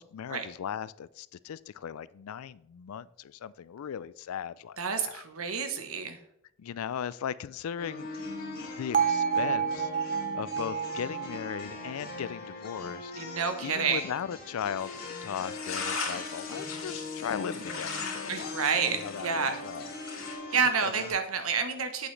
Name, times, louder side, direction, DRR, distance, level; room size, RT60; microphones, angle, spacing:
voice 1, 0.0-5.2 6.6-19.9 20.8-20.9, left 8 dB, 90° left, 0.4 m, -38 dB
voice 2, 4.8-6.2 13.2-14.0 18.3-19.6 20.5-22.1, right 5 dB, 80° right, 1.1 m, -29 dB
sound 1, 7.8-21.1, left 3 dB, 45° left, 2.4 m, -41 dB
Bell, 8.9-13.0, right 7 dB, 40° right, 0.5 m, -30 dB
sound 2, 14.8-20.3, left 4 dB, 70° left, 2.8 m, -39 dB
8.5 x 7.8 x 3.2 m
head